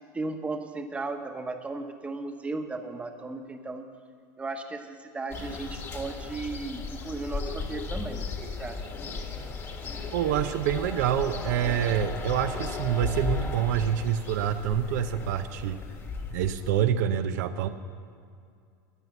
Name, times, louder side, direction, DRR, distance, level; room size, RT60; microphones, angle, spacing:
voice 1, 0.1-3.8 4.4-8.9, right 3 dB, 15° right, 6 dB, 1.1 m, -36 dB
sound 1, 5.3-16.8, left 4 dB, 30° left, 1.6 m, -35 dB
voice 2, 10.1-15.8 16.3-17.7, right 10 dB, 75° right, 8 dB, 0.7 m, -27 dB
14.0 x 9.3 x 7.2 m, 2.3 s
supercardioid pair, 130°, 10 cm